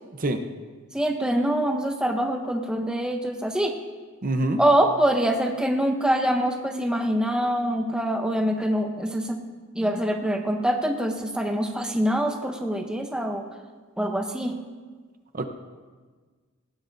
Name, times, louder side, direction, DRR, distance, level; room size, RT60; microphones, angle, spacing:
voice 1, 0.9-3.7 4.6-9.4 9.7-13.5 14.0-14.7, right 1 dB, 5° right, 3 dB, 0.7 m, -24 dB
voice 2, 4.2-4.6 15.3-15.5, right 2 dB, 40° right, 6 dB, 0.8 m, -25 dB
18.5 x 15.0 x 2.6 m, 1.5 s
head